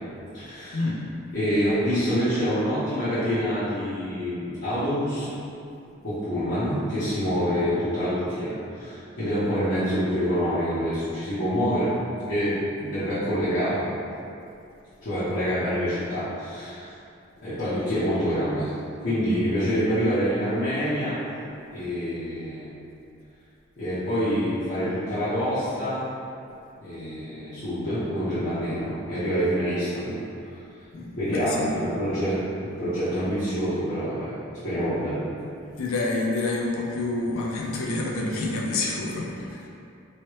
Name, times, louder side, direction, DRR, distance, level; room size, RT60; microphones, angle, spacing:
voice 1, 0.3-0.9 1.3-5.3 6.0-11.9 12.3-13.9 15.0-16.9 17.4-18.7 19.0-21.2 21.7-22.7 23.8-26.0 26.8-30.2 31.2-34.3 34.6-35.2, equal, 55° left, -15 dB, 0.9 m, -26 dB
voice 2, 30.9-31.8 35.8-39.7, left 2 dB, 85° left, -2 dB, 0.5 m, -28 dB
3.1 x 2.8 x 3.0 m, 2.6 s
head